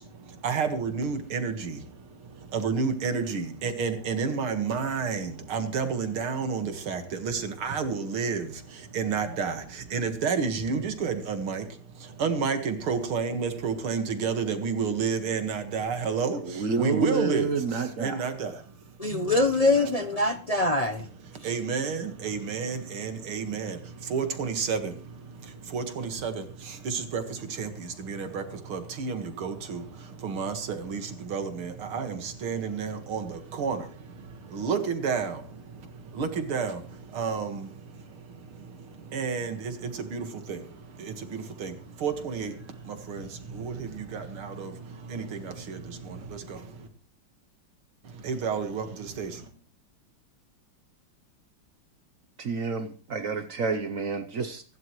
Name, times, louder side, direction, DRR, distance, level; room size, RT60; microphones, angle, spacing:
voice 1, 0.0-19.2 21.2-46.9 48.0-49.5, right 5 dB, 90° right, 2.7 m, -31 dB
voice 2, 16.4-18.3 52.4-54.6, right 4 dB, 50° right, 1.0 m, -29 dB
voice 3, 19.0-21.1, left 2 dB, 40° left, 0.5 m, -24 dB
24.0 x 12.0 x 3.2 m
omnidirectional pair, 2.3 m